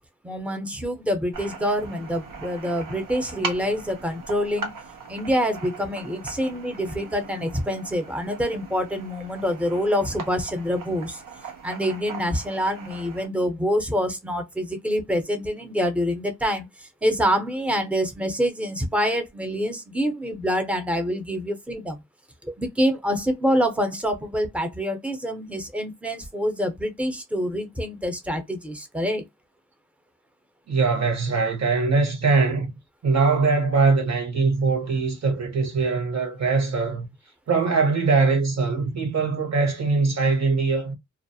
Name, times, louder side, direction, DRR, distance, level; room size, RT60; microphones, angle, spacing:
voice 1, 0.2-4.7 5.1-11.2 11.6-22.0 22.4-29.2, equal, 5° right, 0.6 m, -26 dB
sound 1, 1.3-13.3, right 5 dB, 90° right, 0.7 m, -39 dB
voice 2, 30.7-32.7 33.0-37.1 37.5-40.9, right 4 dB, 55° right, 1.0 m, -22 dB
2.3 x 2.0 x 2.6 m
cardioid pair, 60°, 32 cm